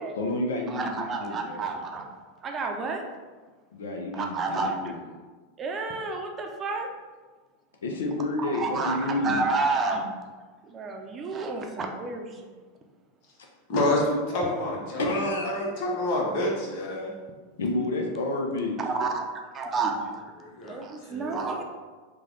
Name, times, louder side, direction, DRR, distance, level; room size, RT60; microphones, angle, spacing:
voice 1, 0.2-1.7 3.7-5.0 7.8-9.4 15.0-15.5 17.6-18.7, left 2 dB, 80° left, 1 dB, 0.5 m, -30 dB
voice 2, 0.7-2.1 2.4-3.1 4.1-4.9 5.6-6.9 8.4-10.1 10.6-12.5 14.4-14.5 18.8-19.2 19.5-20.3 20.6-21.6, right 3 dB, 30° right, 2 dB, 0.5 m, -30 dB
voice 3, 13.7-17.1 20.4-21.6, left 1 dB, 60° left, -2 dB, 1.0 m, -28 dB
3.2 x 2.3 x 3.8 m, 1.4 s
hypercardioid pair, 100°, 0 cm